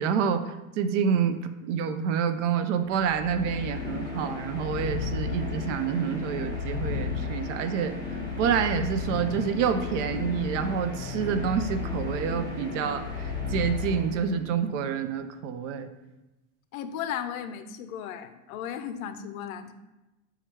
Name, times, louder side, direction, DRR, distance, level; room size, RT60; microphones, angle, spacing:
voice 1, 0.0-7.9 8.4-15.9, right 7 dB, 60° right, 9 dB, 0.5 m, -28 dB
sound 1, 2.8-14.6, left 4 dB, 10° left, 1.0 m, -34 dB
voice 2, 16.7-19.7, left 9 dB, 75° left, 10 dB, 0.5 m, -35 dB
4.3 x 2.4 x 4.5 m, 1.0 s
supercardioid pair, 135°, 42 cm